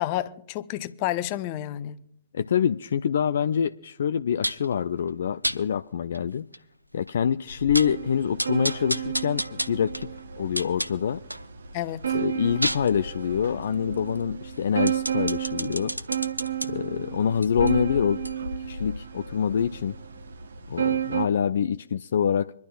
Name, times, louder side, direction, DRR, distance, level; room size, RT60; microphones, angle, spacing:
voice 1, 0.0-2.0 11.7-12.1, left 13 dB, 35° left, 0.7 m, -30 dB
voice 2, 2.3-6.5 6.9-10.1 10.4-11.2 12.1-15.9 16.6-18.2 18.7-20.0 20.7-22.5, left 8 dB, 55° left, 0.4 m, -26 dB
sound 1, 4.4-4.7 5.4-5.6 6.1-6.2 6.5-6.6 7.1-7.2 7.5-8.0 8.4-11.5 11.9-16.7 17.3-20.0 20.3-20.4, equal, 90° right, 0.7 m, -32 dB
sound 2, 7.8-21.3, right 9 dB, 60° right, 1.0 m, -32 dB
26.0 x 12.0 x 2.4 m
figure-of-eight pair, 120°, 0 cm